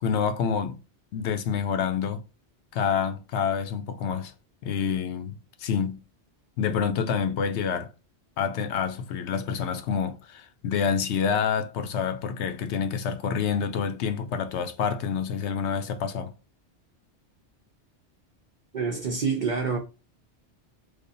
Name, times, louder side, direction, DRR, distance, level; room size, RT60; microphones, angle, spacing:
voice 1, 0.0-0.8 1.1-2.2 2.7-4.3 4.6-6.0 6.6-7.9 8.4-16.3, left 7 dB, 80° left, 0.9 m, -27 dB
voice 2, 18.7-19.8, right 5 dB, 55° right, 0.6 m, -27 dB
3.4 x 2.0 x 3.9 m
omnidirectional pair, 1.2 m